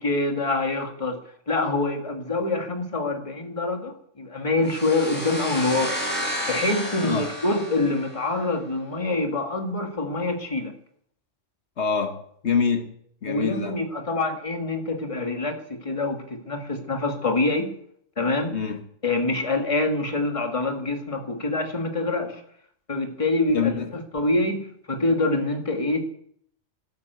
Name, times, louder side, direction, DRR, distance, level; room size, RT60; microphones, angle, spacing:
voice 1, 0.0-1.2 1.5-6.0 6.5-10.8 13.3-17.7 18.2-18.6 19.0-22.4 22.9-26.1, left 2 dB, 30° left, 1.9 m, -25 dB
sound 1, 4.7-8.4, equal, 10° left, 6.7 m, -31 dB
voice 2, 11.8-12.9 13.2-13.8 18.5-18.8 23.5-23.9, left 6 dB, 70° left, 1.5 m, -25 dB
13.0 x 11.5 x 8.0 m
omnidirectional pair, 1.2 m